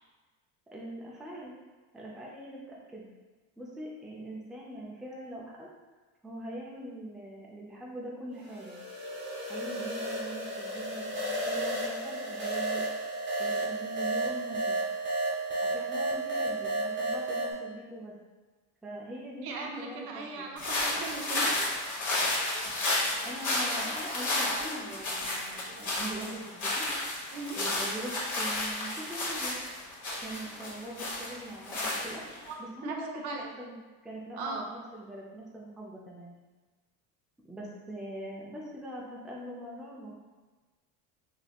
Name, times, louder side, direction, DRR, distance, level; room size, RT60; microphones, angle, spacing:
voice 1, 0.7-1.5 1.9-3.0 3.6-5.7 6.2-8.8 9.5-12.8 13.4-14.8 15.6-18.1 18.8-20.5 22.9-26.9 27.6-29.6 30.2-32.2 32.6-33.8 34.0-36.3 37.5-40.1, right 1 dB, ahead, -4 dB, 0.5 m, -42 dB
sound 1, 8.4-17.5, right 1 dB, 25° right, 0.9 m, -32 dB
voice 2, 19.4-21.6 27.3-27.6 32.5-33.0 33.2-33.5 34.4-34.6, right 4 dB, 60° right, 1 dB, 0.7 m, -38 dB
sound 2, 20.6-32.5, left 2 dB, 40° left, 1.1 m, -32 dB
3.4 x 2.8 x 2.3 m, 1.3 s
supercardioid pair, 90°, 44 cm